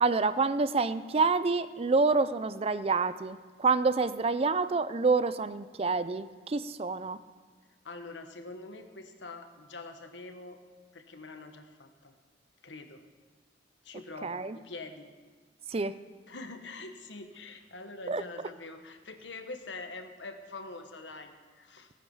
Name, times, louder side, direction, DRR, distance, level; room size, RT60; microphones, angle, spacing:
voice 1, 0.0-7.2 14.2-14.6 15.7-16.0 18.1-18.2, right 4 dB, 35° right, 14 dB, 0.4 m, -27 dB
voice 2, 7.8-10.6 10.9-12.2 12.6-13.1 13.8-15.1 16.3-21.9, left 3 dB, 75° left, 6 dB, 1.3 m, -44 dB
17.5 x 9.5 x 5.5 m, 1.4 s
head